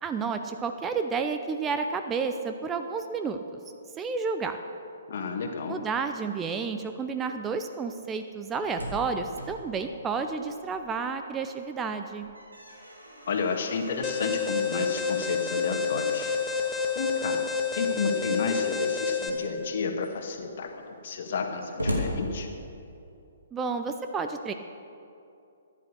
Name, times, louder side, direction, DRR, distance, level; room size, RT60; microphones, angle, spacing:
voice 1, 0.0-3.4 4.0-4.6 5.7-12.3 23.5-24.5, right 5 dB, 15° right, 7 dB, 0.6 m, -31 dB
voice 2, 5.1-5.8 13.3-16.3 16.9-17.4 17.7-22.5, left 4 dB, 50° left, 4 dB, 1.6 m, -31 dB
Slam, 8.3-11.1 11.5-11.6 12.0-17.7 18.6-19.1 19.7-19.8 20.0-23.1, equal, 85° right, 2.7 m, -39 dB
Alarm, 14.0-19.3, left 6 dB, ahead, 1.6 m, -29 dB
14.0 x 10.5 x 6.5 m, 2.6 s
figure-of-eight pair, 125°, 0 cm